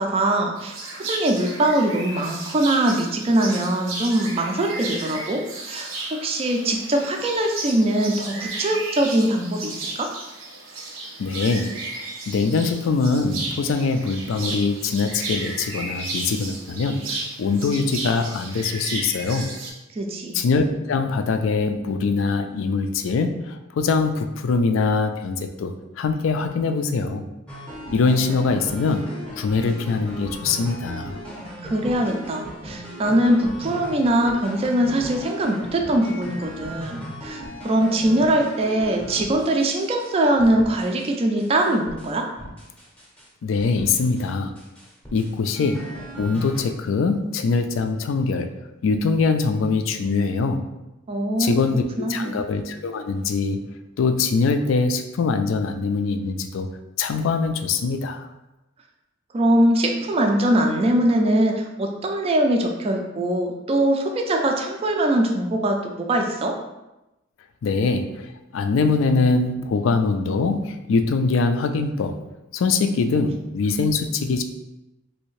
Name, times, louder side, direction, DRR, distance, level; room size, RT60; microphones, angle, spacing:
voice 1, 0.0-5.4 5.7-10.1 20.0-20.4 31.6-42.3 51.1-51.6 52.0-52.4 59.3-66.6, right 1 dB, 30° right, 3 dB, 0.3 m, -22 dB
sound 1, 0.6-19.7, right 2 dB, 80° right, 0.7 m, -34 dB
voice 2, 11.2-19.5 20.3-27.3 27.9-31.1 43.4-44.6 45.1-48.5 48.8-50.7 51.4-51.8 52.1-53.6 54.0-56.7 57.0-58.3 67.6-72.2 72.5-74.4, left 4 dB, 70° left, 8 dB, 0.3 m, -23 dB
sound 2, 27.5-40.1 40.4-41.1 41.4-43.3 43.6-44.3 44.6-46.6, equal, 5° left, 0.7 m, -37 dB
3.2 x 2.7 x 3.1 m, 0.97 s
head